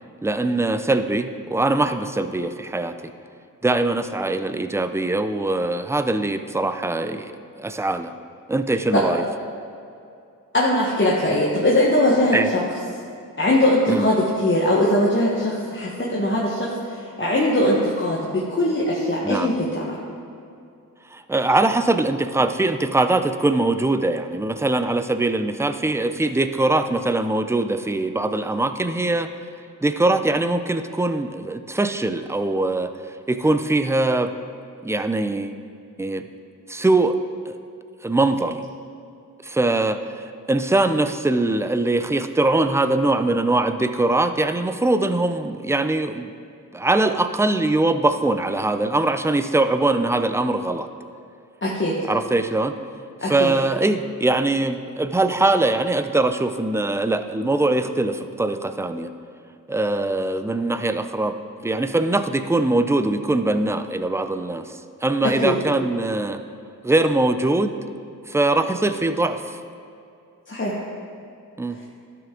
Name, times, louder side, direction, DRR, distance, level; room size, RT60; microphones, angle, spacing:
voice 1, 0.2-3.0 3.6-7.3 7.6-8.1 8.5-9.2 12.3-12.5 13.9-14.0 19.2-19.5 21.1-29.3 29.8-34.3 34.8-35.6 36.0-36.3 36.7-37.2 37.5-37.6 38.0-38.6 39.4-46.4 46.7-50.9 52.1-52.7 53.2-59.1 59.7-61.4 61.6-66.4 66.8-67.7 68.3-69.6 71.6-71.8, right 2 dB, 10° right, 9 dB, 0.4 m, -22 dB
voice 2, 10.5-12.4 13.4-19.9 51.6-51.9 53.2-53.5 65.4-65.6 70.5-70.8, left 1 dB, 35° left, -5 dB, 1.3 m, -21 dB
12.5 x 5.7 x 3.8 m, 2.5 s
cardioid pair, 65°, 34 cm